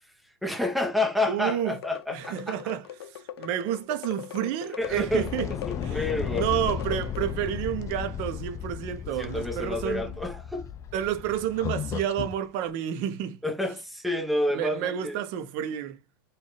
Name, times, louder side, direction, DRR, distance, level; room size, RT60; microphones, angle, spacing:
voice 1, 0.4-2.6 4.8-5.3 5.7-6.4 9.2-10.7 13.4-15.2, left 1 dB, ahead, 1.0 m, -29 dB
voice 2, 1.3-1.8 2.1-5.5 5.8-10.2 10.9-13.4 14.5-16.0, right 10 dB, 50° right, 0.9 m, -30 dB
sound 1, 1.5-7.6, left 10 dB, 80° left, 0.5 m, -41 dB
sound 2, 4.8-12.4, left 8 dB, 25° left, 0.4 m, -34 dB
4.1 x 2.6 x 3.2 m
hypercardioid pair, 125°, 13 cm